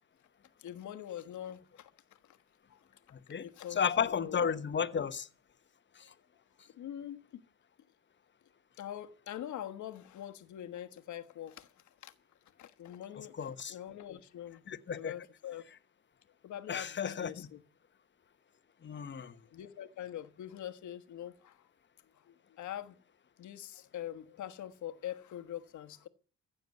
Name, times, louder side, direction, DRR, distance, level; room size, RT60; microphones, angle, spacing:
voice 1, 0.6-1.9 2.3-2.4 2.7-2.8 3.4-4.5 6.7-7.4 8.8-11.7 12.0-12.1 12.6-14.7 14.9-15.6 16.4-17.6 19.2-21.7 22.3-22.9 23.4-26.1, left 11 dB, 75° left, 1.3 m, -44 dB
voice 2, 3.1-5.3 6.0-6.1 13.2-13.7 14.7-15.1 16.7-17.5 18.8-19.3, left 7 dB, 40° left, 1.1 m, -34 dB
15.5 x 7.0 x 9.5 m
cardioid pair, 90°, 30 cm